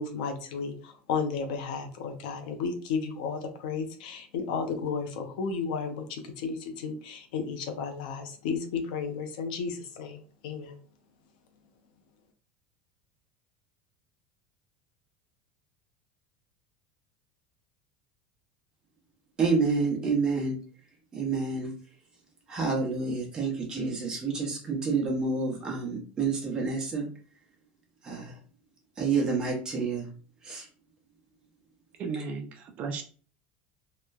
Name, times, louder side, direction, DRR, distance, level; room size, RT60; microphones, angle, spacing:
voice 1, 0.0-10.8, left 5 dB, 80° left, 6 dB, 0.6 m, -33 dB
voice 2, 19.4-20.6 21.1-21.7 22.5-27.1 28.0-28.4 29.0-30.1 30.4-30.7, right 4 dB, 20° right, -1 dB, 0.8 m, -28 dB
voice 3, 32.0-33.0, right 4 dB, 35° right, 4 dB, 0.4 m, -34 dB
3.0 x 2.1 x 2.3 m, 0.40 s
cardioid pair, 160°, 4 cm